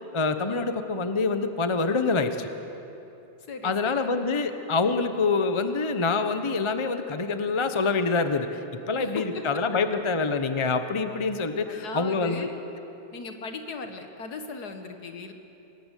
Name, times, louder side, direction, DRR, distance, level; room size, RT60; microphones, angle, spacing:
voice 1, 0.1-2.5 3.6-8.6 8.9-12.5, left 4 dB, 25° left, 8 dB, 0.7 m, -26 dB
voice 2, 3.5-4.2 9.0-9.2 11.7-12.6 13.1-15.3, left 4 dB, 60° left, 6 dB, 2.1 m, -37 dB
26.0 x 19.5 x 8.4 m, 3.0 s
omnidirectional pair, 2.0 m